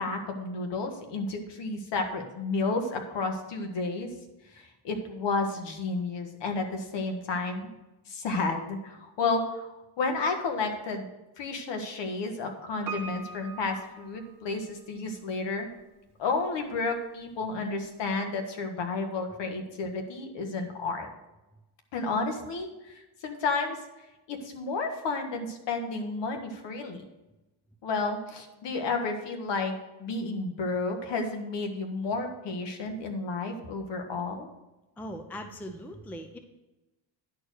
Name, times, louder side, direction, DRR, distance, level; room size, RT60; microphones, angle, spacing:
voice 1, 0.0-4.1 4.5-7.7 8.1-11.1 11.4-15.7 16.2-21.1 21.9-23.8 24.3-27.0 27.8-34.5, left 3 dB, 60° left, 5 dB, 1.6 m, -31 dB
Piano, 12.9-14.9 15.2-15.3, right 4 dB, 40° right, 1.4 m, -41 dB
voice 2, 35.0-36.4, equal, 5° left, 6 dB, 0.5 m, -40 dB
10.5 x 4.6 x 6.4 m, 1.0 s
cardioid pair, 130°, 49 cm